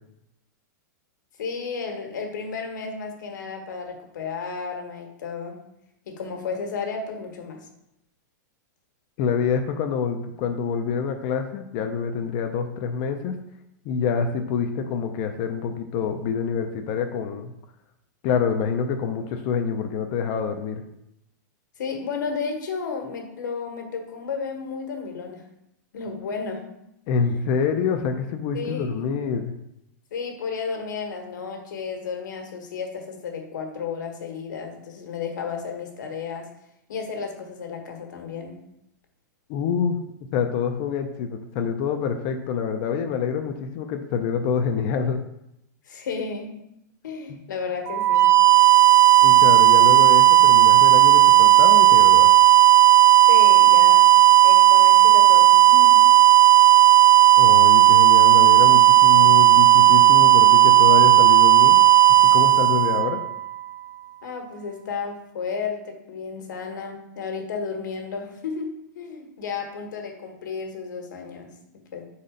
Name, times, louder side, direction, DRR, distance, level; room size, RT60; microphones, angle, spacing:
voice 1, 1.4-5.6 6.0-7.6 21.8-25.4 25.9-26.7 28.5-29.1 30.1-36.5 36.9-38.6 45.9-46.7 47.0-48.3 53.3-54.1 54.4-56.0 64.2-72.0, left 5 dB, 75° left, 3 dB, 1.4 m, -33 dB
voice 2, 9.2-13.4 13.9-17.5 18.2-20.8 27.1-29.5 39.5-40.0 40.3-45.2 47.3-47.4 49.2-52.3 57.4-61.9 62.3-63.2, left 6 dB, 25° left, 6 dB, 0.4 m, -26 dB
sound 1, 47.9-63.7, right 15 dB, 80° right, 0.4 m, -14 dB
5.6 x 4.1 x 5.0 m, 0.82 s
supercardioid pair, 175°, 10 cm